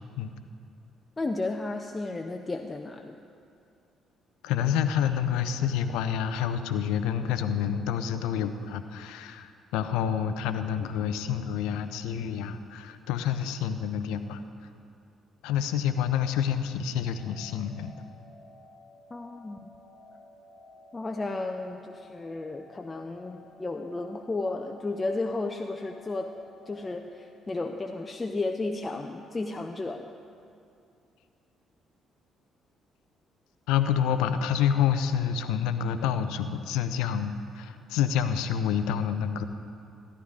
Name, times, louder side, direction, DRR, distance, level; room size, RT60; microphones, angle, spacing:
voice 1, 1.2-3.2 19.1-19.7 20.9-26.3 26.7-30.1, left 2 dB, 25° left, 4 dB, 0.6 m, -33 dB
voice 2, 4.4-14.4 15.4-17.9 33.7-39.4, left 8 dB, 70° left, 10 dB, 0.5 m, -28 dB
sound 1, 17.1-27.1, left 1 dB, ahead, 3.3 m, -54 dB
14.0 x 11.0 x 3.7 m, 2.5 s
figure-of-eight pair, 45°, 0 cm